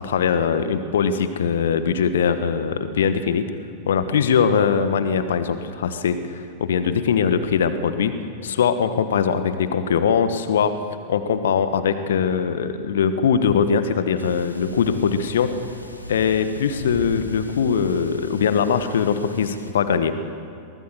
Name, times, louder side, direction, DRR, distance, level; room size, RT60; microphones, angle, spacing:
voice 1, 0.0-3.5 3.9-8.1 8.4-10.7 11.1-15.5 16.1-20.1, left 6 dB, 65° left, 11 dB, 1.4 m, -21 dB
sound 1, 14.2-19.7, left 1 dB, 85° left, 1.7 m, -38 dB
23.0 x 18.0 x 7.8 m, 2.4 s
figure-of-eight pair, 90°, 0 cm